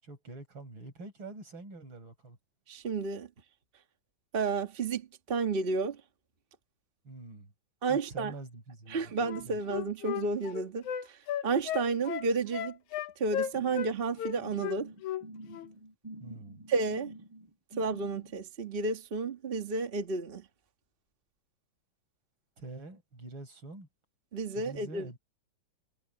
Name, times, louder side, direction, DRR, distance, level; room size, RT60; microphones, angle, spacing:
voice 1, 0.0-2.4 7.0-7.5 7.9-9.6 16.2-16.7 22.6-23.9 24.6-25.2, right 2 dB, 35° right, 5.6 m, -46 dB
voice 2, 2.7-3.3 4.3-6.0 7.8-8.3 8.9-11.2 11.4-12.8 13.2-14.9 16.7-17.1 17.8-20.4 24.3-25.1, right 4 dB, 75° right, 0.5 m, -31 dB
Wind instrument woodwind instrument, 9.2-13.9 14.2-15.2 15.5-15.7, left 10 dB, 75° left, 2.4 m, -35 dB
sound 1, 13.5-18.3, right 1 dB, 10° right, 1.3 m, -48 dB
omnidirectional pair, 3.6 m